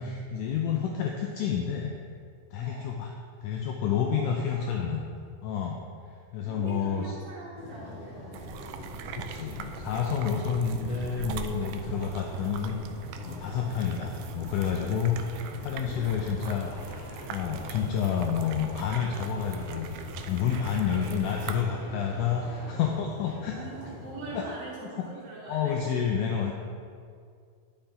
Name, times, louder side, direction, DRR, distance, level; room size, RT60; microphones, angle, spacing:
voice 1, 0.0-1.9 2.5-3.1 3.4-5.0 5.4-5.8 6.3-7.1 9.2-12.8 13.2-16.7 17.3-19.9 20.3-23.6 24.3-24.4 25.5-26.5, left 7 dB, 80° left, 1 dB, 1.9 m, -29 dB
voice 2, 2.6-2.9 4.1-4.7 6.4-8.9 15.8-16.6 20.6-21.1 21.7-21.9 23.5-25.8, right 2 dB, 70° right, -11 dB, 4.2 m, -44 dB
sound 1, 7.5-24.4, left 1 dB, 30° left, 1.0 m, -42 dB
sound 2, 8.3-21.6, right 7 dB, 90° right, 2.4 m, -42 dB
sound 3, 15.6-22.9, left 2 dB, 60° left, 2.1 m, -52 dB
11.5 x 6.6 x 3.8 m, 2.2 s
omnidirectional pair, 4.1 m